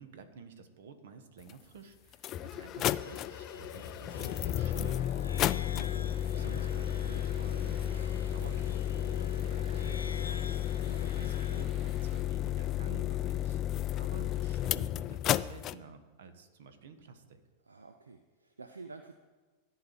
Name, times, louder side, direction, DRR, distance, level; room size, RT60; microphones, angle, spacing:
voice 1, 0.0-5.7 6.3-10.5 11.1-13.6 13.9-17.4, right 5 dB, 60° right, 9 dB, 1.3 m, -50 dB
sound 1, 1.5-1.6 2.1-15.7, left 11 dB, 35° left, 0.3 m, -32 dB
sound 2, 3.0-11.6, left 4 dB, 75° left, 0.8 m, -48 dB
voice 2, 5.7-6.2 10.9-11.1 17.6-19.1, right 3 dB, 75° right, 7 dB, 0.6 m, -49 dB
sound 3, 6.0-12.2, right 2 dB, 40° right, 2.2 m, -52 dB
14.0 x 4.7 x 8.3 m, 1.4 s
figure-of-eight pair, 90°, 0 cm